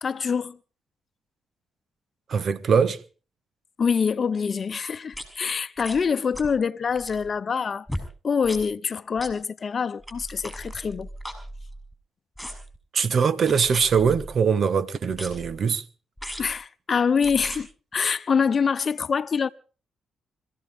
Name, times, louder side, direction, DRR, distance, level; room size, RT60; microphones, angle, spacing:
voice 1, 0.0-0.6 3.8-7.9 8.2-11.1 16.4-19.5, left 6 dB, 50° left, 0.8 m, -25 dB
voice 2, 2.3-3.0 12.9-15.8, right 6 dB, 55° right, 1.3 m, -22 dB
sound 1, 5.1-5.3 5.8-6.0 6.3-6.6 6.9-7.3 7.9-8.1 8.4-8.6 9.2-9.3 10.0-11.9 12.4-12.8 13.5-14.4 15.1-15.6 16.2-16.5 17.2-17.6 18.4-18.5, equal, ahead, 6.7 m, -37 dB
25.5 x 15.5 x 3.7 m
supercardioid pair, 55°, 0 cm